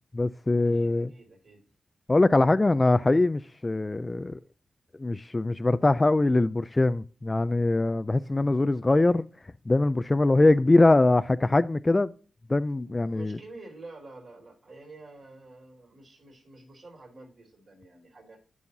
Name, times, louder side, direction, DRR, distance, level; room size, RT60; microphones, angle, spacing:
voice 1, 0.1-1.1 2.1-4.4 5.0-9.2 9.7-12.1 12.5-13.4, left 2 dB, 25° left, 0.3 m, -22 dB
voice 2, 0.7-1.6 10.3-10.6 13.1-18.4, right 2 dB, 55° right, 4.2 m, -48 dB
11.0 x 5.6 x 2.6 m
cardioid pair, 75°, 0 cm